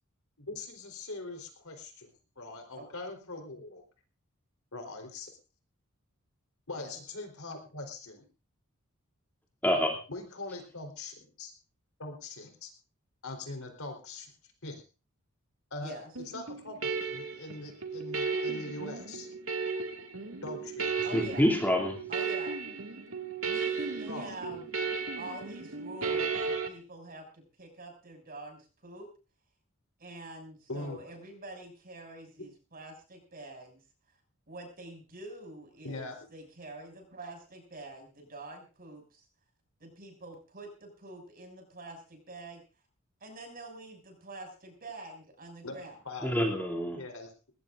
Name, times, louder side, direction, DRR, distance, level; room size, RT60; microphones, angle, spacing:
voice 1, 0.4-3.8 4.7-5.3 6.7-8.3 10.1-11.5 12.0-12.7 13.2-14.3 14.6-14.8 15.7-15.9 16.3-19.3 20.4-21.0 24.0-24.3 30.7-31.0 35.8-36.2 45.6-45.8 46.0-46.6 46.9-47.5, left 2 dB, 80° left, 4 dB, 4.0 m, -42 dB
voice 2, 9.6-10.0 21.1-22.0 46.2-47.0, equal, 10° left, 0 dB, 2.8 m, -27 dB
voice 3, 15.8-16.1 21.0-21.5 22.1-22.5 23.4-24.9 25.2-29.1 30.0-33.8 34.5-39.2 39.8-42.6 43.2-46.0, right 2 dB, 45° right, 3 dB, 6.7 m, -46 dB
sound 1, 16.2-26.7, right 5 dB, 70° right, 2.2 m, -34 dB
20.5 x 18.0 x 2.6 m, 0.34 s
head